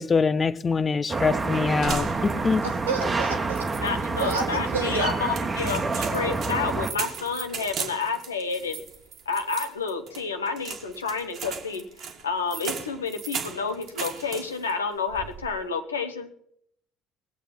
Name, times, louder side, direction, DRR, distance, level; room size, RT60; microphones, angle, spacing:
voice 1, 0.0-2.6, left 5 dB, 30° left, 0.7 m, -24 dB
sound 1, 1.1-6.9, right 3 dB, 25° right, 1.4 m, -28 dB
sound 2, 1.8-2.7 3.0-3.1 3.6-4.4 5.0-14.7 15.1-15.6, right 6 dB, 50° right, 1.7 m, -37 dB
voice 2, 2.6-3.7 4.2-5.1, right 4 dB, 80° right, 2.0 m, -29 dB
voice 3, 3.7-8.8 9.2-11.8 12.2-16.3, left 5 dB, 80° left, 1.2 m, -30 dB
19.5 x 8.2 x 6.0 m
figure-of-eight pair, 55°, 0 cm